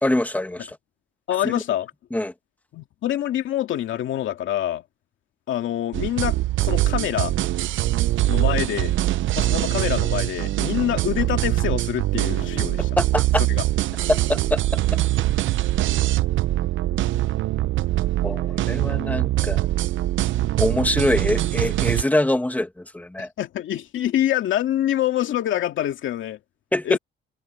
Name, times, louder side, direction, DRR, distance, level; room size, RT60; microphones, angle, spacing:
voice 1, 0.0-0.8 1.4-1.6 2.1-2.3 13.0-13.4 14.1-15.0 18.2-19.7 20.6-23.3 26.7-27.0, left 1 dB, 10° left, 1.8 m, -24 dB
voice 2, 1.3-1.9 2.7-4.8 5.5-7.3 8.3-8.9 9.3-12.9 13.5-13.6 23.2-26.4 26.8-27.0, left 12 dB, 75° left, 2.3 m, -26 dB
sound 1, 5.9-22.0, right 15 dB, 75° right, 0.7 m, -23 dB
cardioid pair, 90°, 20 cm